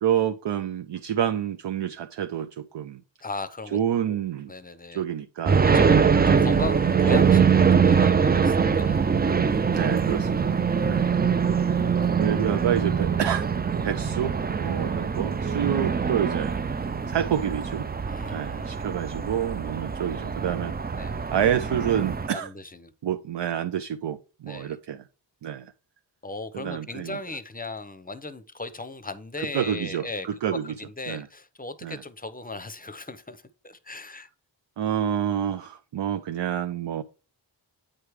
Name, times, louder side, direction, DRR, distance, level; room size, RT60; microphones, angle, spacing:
voice 1, 0.0-3.0 3.7-4.5 4.9-6.0 9.7-11.1 12.2-13.5 13.8-16.6 17.1-17.9 18.3-22.5 23.0-25.0 25.4-25.7 26.5-27.2 29.4-30.6 31.1-31.3 31.8-32.0 34.8-37.0, right 9 dB, 70° right, 0.5 m, -28 dB
voice 2, 3.2-3.8 4.1-5.0 5.7-9.0 13.1-13.3 18.0-19.0 21.0-21.2 22.3-22.9 24.5-24.8 26.2-34.3, left 3 dB, 20° left, 0.7 m, -37 dB
sound 1, 5.5-22.3, right 6 dB, 25° right, 0.3 m, -23 dB
8.7 x 3.3 x 4.7 m
wide cardioid pair, 65°, 45 cm